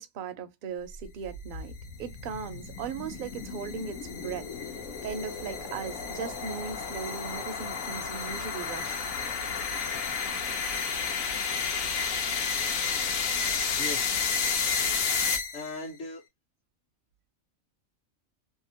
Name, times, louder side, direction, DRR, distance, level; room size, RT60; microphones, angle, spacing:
voice 1, 0.0-4.5 5.0-9.1, right 6 dB, 65° right, 0.5 m, -38 dB
sound 1, 1.0-15.8, left 5 dB, 80° left, 1.2 m, -31 dB
voice 2, 13.8-15.0 15.5-16.2, left 3 dB, 60° left, 1.1 m, -40 dB
2.8 x 2.5 x 2.6 m
omnidirectional pair, 1.4 m